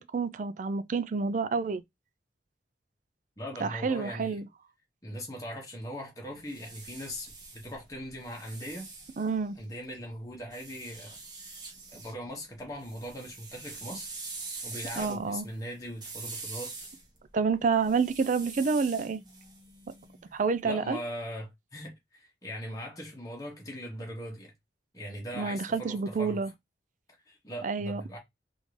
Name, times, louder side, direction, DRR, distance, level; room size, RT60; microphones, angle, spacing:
voice 1, 0.0-1.8 3.6-4.5 9.2-9.6 15.0-15.5 17.3-19.2 20.3-21.0 25.4-26.5 27.6-28.0, right 5 dB, 45° right, 0.4 m, -28 dB
voice 2, 3.4-4.4 5.0-8.9 9.6-11.6 11.9-14.1 14.6-16.9 20.3-24.5 24.9-26.4 27.3-28.2, equal, 20° left, 1.0 m, -40 dB
sound 1, 6.3-9.8 10.5-12.2 12.5-20.4, right 3 dB, 25° right, 0.9 m, -44 dB
3.6 x 2.5 x 3.2 m
head